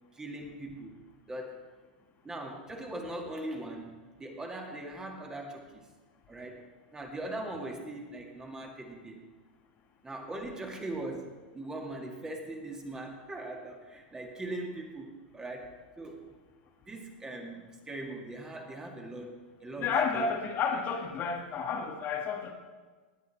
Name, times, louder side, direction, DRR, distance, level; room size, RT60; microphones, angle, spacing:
voice 1, 0.1-1.0 1.3-1.6 2.2-5.8 6.3-6.7 6.9-9.3 10.0-16.3 16.8-19.3 19.6-20.3, right 1 dB, 15° right, 2 dB, 2.1 m, -40 dB
voice 2, 19.8-22.5, left 5 dB, 35° left, 3 dB, 1.4 m, -31 dB
19.0 x 8.3 x 4.3 m, 1.4 s
hypercardioid pair, 110°, 5 cm